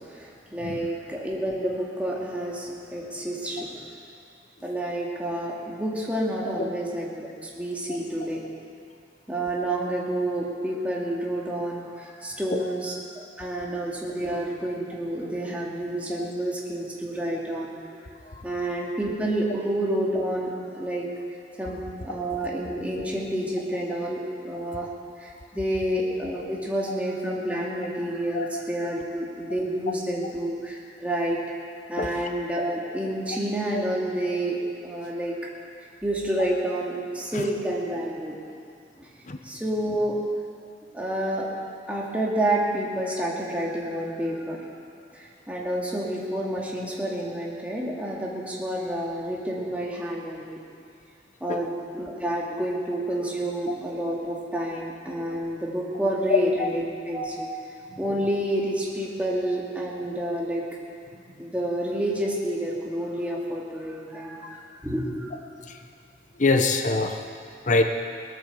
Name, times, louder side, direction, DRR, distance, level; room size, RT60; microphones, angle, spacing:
voice 1, 0.0-3.7 4.6-8.4 9.3-13.0 13.4-18.0 18.4-21.1 21.6-24.9 25.2-31.4 31.9-35.3 36.0-38.4 39.0-39.1 39.4-40.2 40.9-41.5 41.9-44.7 45.1-50.6 51.4-57.5 58.0-60.6 61.4-65.3, right 1 dB, 10° right, -4 dB, 2.3 m, -29 dB
voice 2, 66.4-67.2 67.7-67.8, left 3 dB, 45° left, 5 dB, 0.8 m, -24 dB
19.5 x 8.9 x 7.0 m, 2.3 s
head